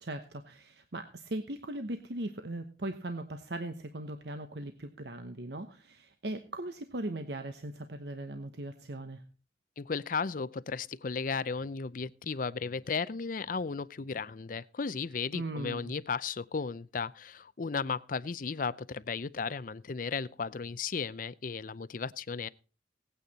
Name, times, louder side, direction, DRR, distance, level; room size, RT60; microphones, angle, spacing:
voice 1, 0.0-9.2 15.3-15.9, right 1 dB, 65° right, 1.1 m, -39 dB
voice 2, 9.8-22.5, left 5 dB, 50° left, 0.5 m, -35 dB
18.0 x 9.3 x 4.1 m
head